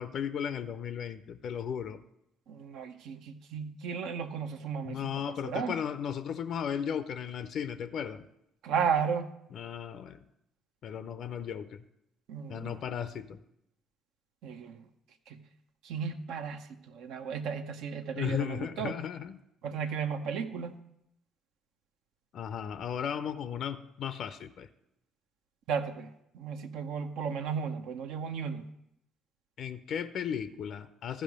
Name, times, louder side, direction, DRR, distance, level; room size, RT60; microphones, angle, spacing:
voice 1, 0.0-2.0 4.8-8.2 9.5-10.2 10.8-11.8 12.5-13.4 18.2-19.4 22.3-24.7 29.6-31.2, left 8 dB, 55° left, 11 dB, 0.4 m, -35 dB
voice 2, 2.5-5.1 5.4-5.7 8.6-9.3 12.3-12.8 14.4-14.8 15.3-15.4 15.8-19.0 19.6-20.8 25.7-28.7, right 6 dB, 60° right, 8 dB, 0.6 m, -34 dB
14.0 x 5.0 x 5.1 m, 0.80 s
figure-of-eight pair, 45°, 0 cm